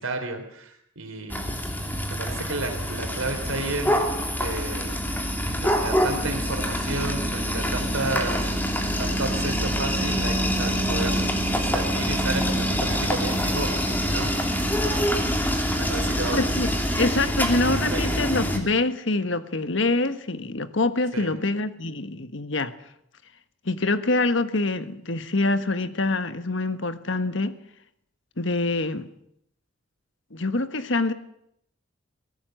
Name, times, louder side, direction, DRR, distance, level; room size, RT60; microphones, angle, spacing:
voice 1, 0.0-1.6 2.1-5.1 5.5-8.4 9.0-11.2 11.6-15.3 15.8-16.4 17.9-18.1 21.1-21.3, right 2 dB, 90° right, 4 dB, 3.3 m, -32 dB
sound 1, 1.3-18.6, equal, 10° left, 2.9 m, -25 dB
voice 2, 16.3-22.7 23.6-27.5 28.4-29.1 30.3-31.1, left 2 dB, 65° left, 11 dB, 1.4 m, -25 dB
23.0 x 17.5 x 7.8 m, 0.75 s
head